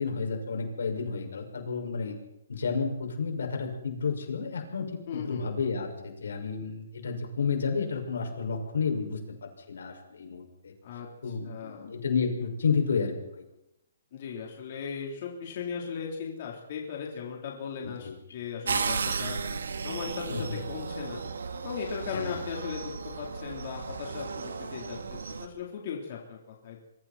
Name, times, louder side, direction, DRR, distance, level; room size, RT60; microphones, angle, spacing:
voice 1, 0.0-2.2 2.5-4.9 5.1-10.7 11.2-13.4 17.8-18.2 20.3-20.6 22.1-22.4, left 5 dB, 80° left, 3 dB, 6.4 m, -31 dB
voice 2, 5.1-5.5 10.8-11.1 11.4-11.9 14.1-19.4 19.8-21.3 21.5-26.8, left 6 dB, 40° left, -1 dB, 4.1 m, -37 dB
sound 1, 18.7-25.5, right 5 dB, 90° right, 2.4 m, -34 dB
24.5 x 24.0 x 4.5 m, 0.86 s
hypercardioid pair, 170°, 0 cm